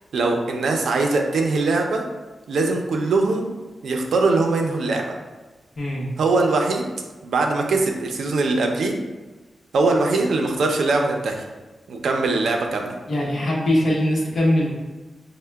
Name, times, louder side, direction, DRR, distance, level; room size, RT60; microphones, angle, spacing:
voice 1, 0.1-2.0 2.5-3.5 3.8-5.0 6.2-6.9 7.2-9.0 9.7-11.4 11.9-12.9, right 3 dB, 85° right, 2 dB, 0.5 m, -21 dB
voice 2, 5.8-6.1 13.1-14.7, left 1 dB, 45° left, -4 dB, 0.8 m, -21 dB
6.2 x 2.1 x 2.2 m, 1.2 s
wide cardioid pair, 180°, 0 cm